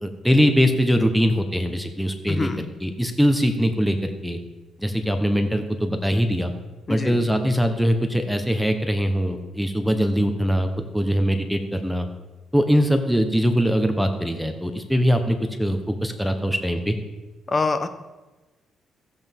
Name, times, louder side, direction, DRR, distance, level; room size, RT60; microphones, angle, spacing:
voice 1, 0.0-2.5 2.8-4.4 4.8-6.5 6.9-10.7 10.9-12.1 12.5-17.0, equal, ahead, 6 dB, 1.1 m, -22 dB
voice 2, 2.3-2.7 6.9-7.2 17.5-17.9, left 3 dB, 30° left, 9 dB, 1.0 m, -25 dB
15.0 x 7.9 x 3.7 m, 1.2 s
cardioid pair, 90°, 0 cm